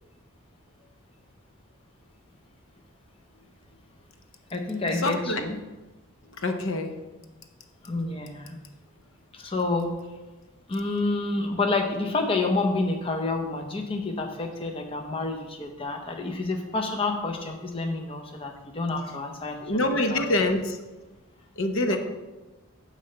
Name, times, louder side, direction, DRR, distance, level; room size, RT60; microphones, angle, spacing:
voice 1, 4.5-5.6 7.8-8.6 9.3-9.9 10.7-20.2 21.9-22.0, left 3 dB, 25° left, 3 dB, 0.6 m, -29 dB
voice 2, 5.0-5.4 6.4-6.9 19.6-20.8 21.6-22.0, left 2 dB, 65° left, 6 dB, 0.7 m, -25 dB
9.4 x 3.2 x 6.5 m, 1.1 s
head